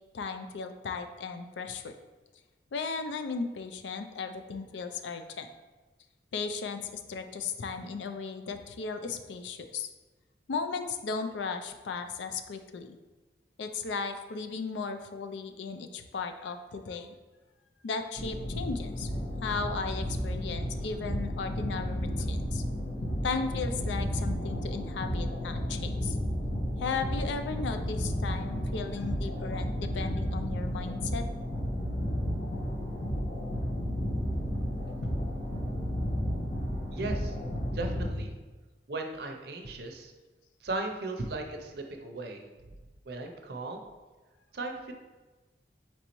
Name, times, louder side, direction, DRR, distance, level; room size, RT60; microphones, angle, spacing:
voice 1, 0.1-1.9 2.7-5.5 6.3-9.9 10.5-13.0 13.6-17.1 17.8-19.1 19.4-22.6 23.2-26.2 26.8-31.3, left 4 dB, 85° left, 8 dB, 0.4 m, -36 dB
sound 1, 18.2-38.1, equal, 60° left, 1.1 m, -32 dB
voice 2, 36.9-37.4 37.7-38.3 38.9-40.1 40.6-42.5 43.0-43.8 44.5-44.9, right 2 dB, 60° right, 4 dB, 0.5 m, -36 dB
4.5 x 4.0 x 3.0 m, 1.2 s
head